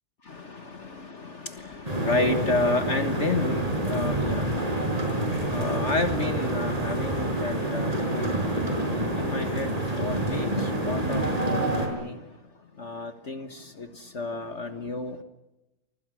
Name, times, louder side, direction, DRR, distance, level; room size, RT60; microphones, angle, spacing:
voice 1, 0.3-8.4 9.1-12.2 12.8-15.2, left 3 dB, 45° left, 9 dB, 1.6 m, -31 dB
sound 1, 1.8-11.9, right 1 dB, 20° right, 5.8 m, -27 dB
30.0 x 24.5 x 6.3 m, 0.98 s
omnidirectional pair, 1.8 m